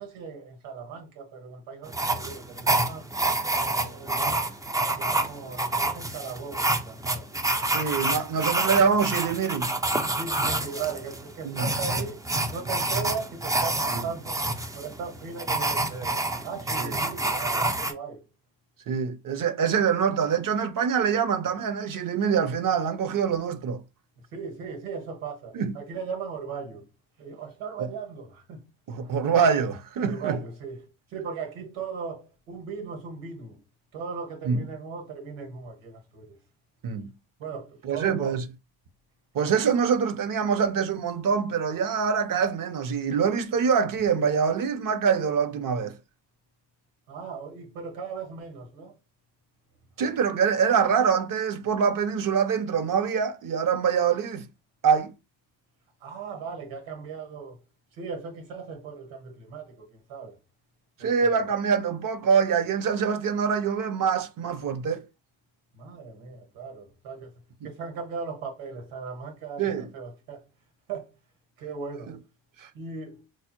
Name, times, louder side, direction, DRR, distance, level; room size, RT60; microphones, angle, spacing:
voice 1, 0.0-3.1 3.5-4.6 5.0-7.4 10.1-14.4 14.8-18.2 24.3-26.9 27.2-29.2 30.0-33.6 33.9-36.4 37.4-38.4 47.1-49.0 56.0-57.6 57.9-60.4 61.0-61.4 65.7-67.3 67.6-70.5 70.9-71.1 71.6-72.1 72.7-73.2, right 5 dB, 70° right, 1.6 m, -38 dB
sound 1, 1.9-17.9, right 2 dB, 10° right, 0.4 m, -28 dB
voice 2, 7.6-9.7 11.4-11.7 16.8-17.0 18.9-23.8 25.5-25.7 28.9-30.4 34.4-34.6 36.8-37.1 37.8-38.4 39.3-46.0 50.0-54.5 54.8-55.1 61.0-65.0 69.6-69.9 72.6-72.7, right 6 dB, 40° right, 0.7 m, -25 dB
4.6 x 2.0 x 2.9 m
supercardioid pair, 75°, 50 cm